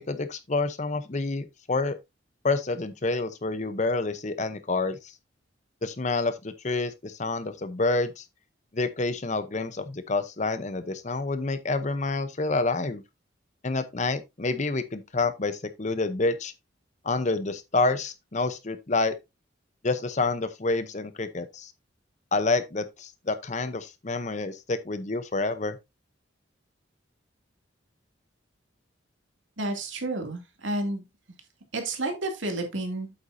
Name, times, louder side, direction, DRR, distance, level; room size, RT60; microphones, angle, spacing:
voice 1, 0.0-2.0 2.4-5.0 5.8-8.2 8.7-13.0 13.6-16.5 17.0-19.1 19.8-21.7 22.3-25.8, left 3 dB, 40° left, 0.8 m, -28 dB
voice 2, 29.6-31.0 31.7-33.1, right 2 dB, 75° right, 2.6 m, -30 dB
8.3 x 7.9 x 2.7 m
head